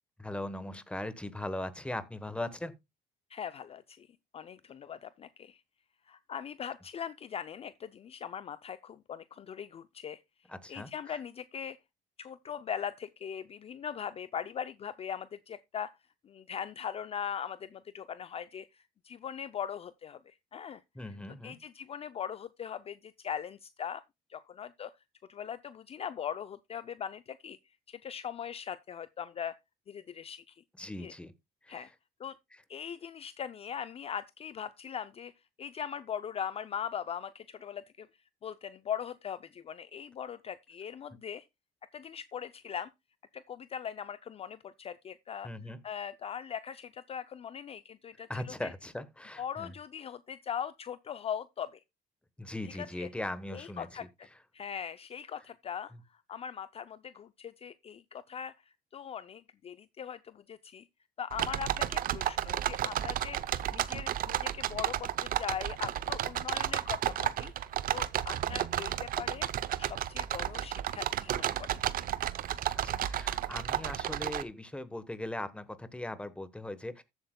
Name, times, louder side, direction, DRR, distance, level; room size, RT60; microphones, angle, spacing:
voice 1, 0.2-2.7 10.5-11.2 20.9-21.6 30.8-31.3 31.6-31.9 32.5-32.6 45.4-45.8 48.3-49.7 52.4-54.0 55.9-56.0 68.5-68.6 72.8-77.0, left 1 dB, 5° left, 1.0 m, -39 dB
voice 2, 3.3-4.1 4.3-5.6 6.1-10.2 10.7-11.8 12.2-15.9 16.2-20.8 21.4-24.0 24.3-24.9 25.3-27.6 27.9-29.6 29.9-30.6 31.0-31.1 31.7-31.9 32.2-32.3 32.7-35.3 35.6-38.1 38.4-41.5 41.9-42.9 43.3-45.5 45.8-48.7 49.4-51.8 52.8-53.1 53.5-54.3 54.5-55.9 56.3-60.9 61.2-67.5 67.9-69.5 69.8-71.8, left 8 dB, 35° left, 0.4 m, -40 dB
sound 1, 61.3-74.4, right 11 dB, 60° right, 0.6 m, -32 dB
14.5 x 8.0 x 2.2 m
cardioid pair, 110°, 17 cm